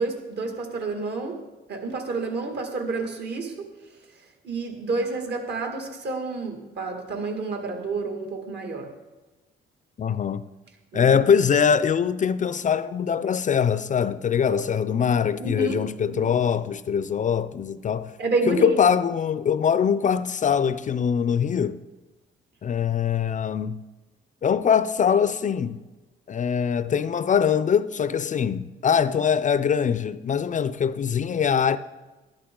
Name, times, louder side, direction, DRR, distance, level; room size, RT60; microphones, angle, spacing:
voice 1, 0.0-1.4 1.7-3.5 4.4-8.9 10.9-11.1 14.5-14.6 15.4-15.8 16.1-16.3 18.2-18.8, right 3 dB, 55° right, 2.2 m, -29 dB
voice 2, 10.0-10.4 10.9-18.1 18.5-21.8 22.6-23.8 24.4-25.8 26.3-31.8, left 7 dB, 40° left, 0.4 m, -22 dB
12.0 x 11.5 x 3.8 m
cardioid pair, 90°, 20 cm